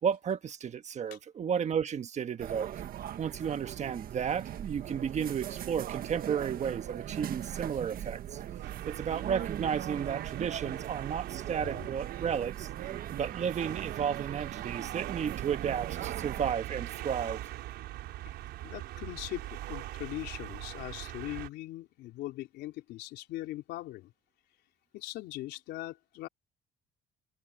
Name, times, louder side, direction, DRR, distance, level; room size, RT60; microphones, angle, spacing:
voice 1, 0.0-2.8 3.2-8.4 8.8-12.7 13.1-17.4, right 7 dB, 45° right, 1.4 m, -33 dB
sound 1, 2.4-16.5, right 11 dB, 60° right, 1.4 m, -40 dB
sound 2, 8.6-21.5, right 15 dB, 80° right, 4.7 m, -41 dB
voice 2, 18.6-24.1 24.9-26.3, left 16 dB, 85° left, 3.8 m, -40 dB
cardioid pair, 110°, 17 cm